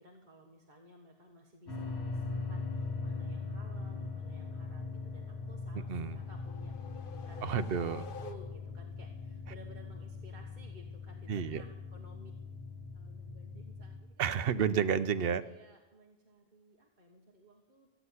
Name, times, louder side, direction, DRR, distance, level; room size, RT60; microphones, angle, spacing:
voice 1, 0.0-7.5 7.9-12.3 12.9-14.2 14.5-14.7 15.4-17.9, right 1 dB, 45° right, 0 dB, 1.4 m, -56 dB
sound 1, 1.7-14.0, left 4 dB, 80° left, 2.7 m, -41 dB
voice 2, 5.7-6.2 7.4-8.1 11.3-11.6 14.2-15.4, right 7 dB, 65° right, 12 dB, 0.9 m, -31 dB
sound 2, 5.8-8.9, left 6 dB, 55° left, 1.0 m, -50 dB
14.5 x 8.0 x 9.6 m, 1.1 s
omnidirectional pair, 1.1 m